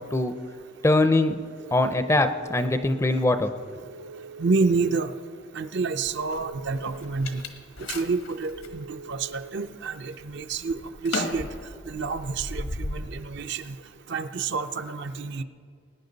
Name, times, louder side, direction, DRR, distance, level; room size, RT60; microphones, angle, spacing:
voice 1, 0.8-1.4 1.7-3.5, left 2 dB, 15° left, 9 dB, 0.4 m, -22 dB
Telephone, 1.6-2.7 3.9-5.0 6.1-7.2 8.4-9.5, right 3 dB, 75° right, 1.1 m, -43 dB
voice 2, 4.4-5.1 5.5-7.4 7.9-11.5 11.9-13.7 14.1-15.4, right 4 dB, 55° right, 9 dB, 0.5 m, -28 dB
sound 1, 6.1-8.8 9.3-9.9 10.2-13.0, left 2 dB, 85° left, 1.3 m, -35 dB
20.5 x 9.8 x 4.0 m, 2.1 s
head